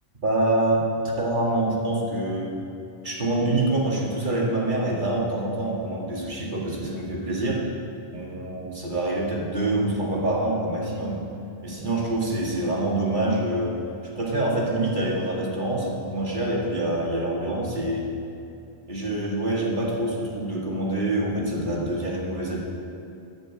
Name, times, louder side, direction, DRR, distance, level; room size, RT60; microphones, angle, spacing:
voice 1, 0.2-2.6 3.0-7.6 8.1-11.3 11.6-13.8 14.1-18.1 18.9-22.6, right 1 dB, 50° right, -3 dB, 2.1 m, -26 dB
12.0 x 5.4 x 8.6 m, 2.6 s
omnidirectional pair, 1.1 m